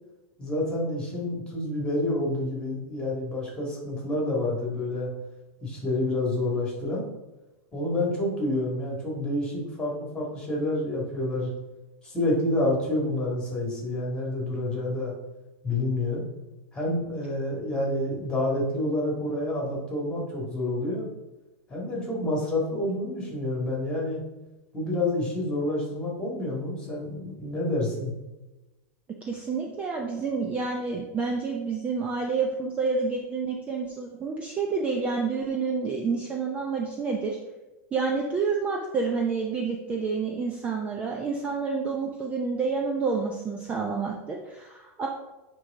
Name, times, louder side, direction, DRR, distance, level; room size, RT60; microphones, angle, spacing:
voice 1, 0.4-5.1 5.6-7.0 7.7-11.5 12.0-15.1 15.6-16.2 16.7-21.1 21.7-24.2 24.7-28.2, left 1 dB, 10° left, -3 dB, 1.9 m, -28 dB
voice 2, 29.3-37.4 37.9-45.1, right 4 dB, 15° right, 0 dB, 0.5 m, -29 dB
9.5 x 3.3 x 3.6 m, 1.1 s
supercardioid pair, 155°, 8 cm